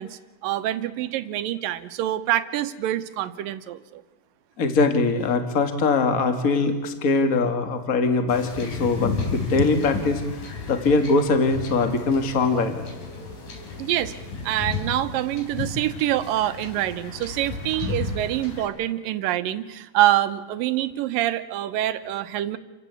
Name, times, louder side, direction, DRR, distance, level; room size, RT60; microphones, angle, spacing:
voice 1, 0.0-4.0 13.8-14.1 14.4-22.6, right 13 dB, 80° right, 11 dB, 2.7 m, -26 dB
voice 2, 4.6-10.2 10.7-12.9, left 3 dB, 30° left, 6 dB, 2.0 m, -22 dB
Wind / Ocean / Boat Water vehicle, 8.3-18.7, left 3 dB, 70° left, 6.2 m, -33 dB
29.0 x 16.5 x 8.3 m, 1.2 s
omnidirectional pair, 4.0 m